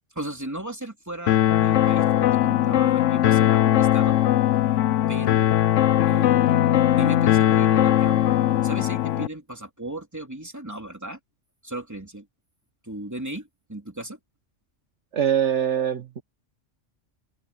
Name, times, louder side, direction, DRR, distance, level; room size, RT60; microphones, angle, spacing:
voice 1, 0.1-4.2 5.1-5.6 6.1-8.2 8.6-11.2 11.6-12.3 12.8-14.2, right 1 dB, 15° right, 3.0 m, -36 dB
sound 1, 1.3-9.3, left 12 dB, 80° left, 1.0 m, -20 dB
voice 2, 15.1-16.2, right 9 dB, 70° right, 1.4 m, -23 dB
omnidirectional pair, 1.3 m